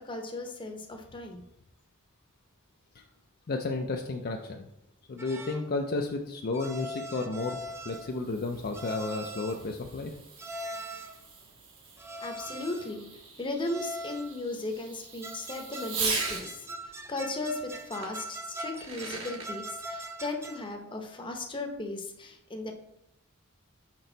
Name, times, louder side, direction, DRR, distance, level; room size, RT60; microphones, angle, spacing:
voice 1, 0.0-1.4 12.2-22.7, left 2 dB, 25° left, 3 dB, 0.8 m, -36 dB
voice 2, 3.5-4.7 5.1-10.2, left 3 dB, 45° left, 3 dB, 0.5 m, -32 dB
sound 1, 5.2-5.7 6.5-8.2 8.7-9.7 10.4-11.2 12.0-13.0 13.7-14.4 15.0-20.7, right 1 dB, 10° right, 0.4 m, -41 dB
Fireworks, 7.7-16.5 18.0-18.1 18.6-19.5, right 4 dB, 65° right, 1.4 m, -39 dB
6.0 x 5.3 x 3.9 m, 0.83 s
head